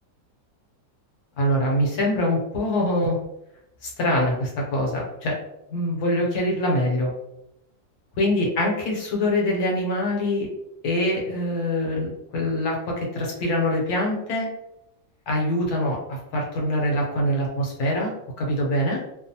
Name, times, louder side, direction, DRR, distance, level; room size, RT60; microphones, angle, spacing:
voice 1, 1.4-3.2 3.8-5.4 5.7-7.1 8.2-10.5 10.8-14.5 15.3-18.1 18.4-19.0, left 1 dB, 70° left, -1 dB, 1.3 m, -24 dB
3.0 x 2.1 x 2.7 m, 0.83 s
omnidirectional pair, 1.7 m